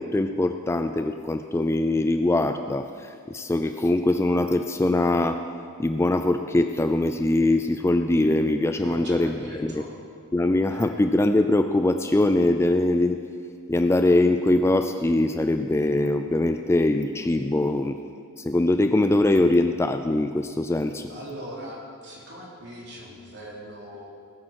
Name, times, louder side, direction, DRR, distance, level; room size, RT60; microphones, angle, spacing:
voice 1, 0.0-5.4 5.8-9.8 10.3-13.2 13.7-18.0 18.4-21.1, left 2 dB, 10° left, 8 dB, 0.3 m, -22 dB
voice 2, 8.8-10.0 10.7-10.9 21.1-24.1, equal, 55° right, -4 dB, 3.1 m, -40 dB
19.0 x 8.6 x 4.6 m, 2.2 s
head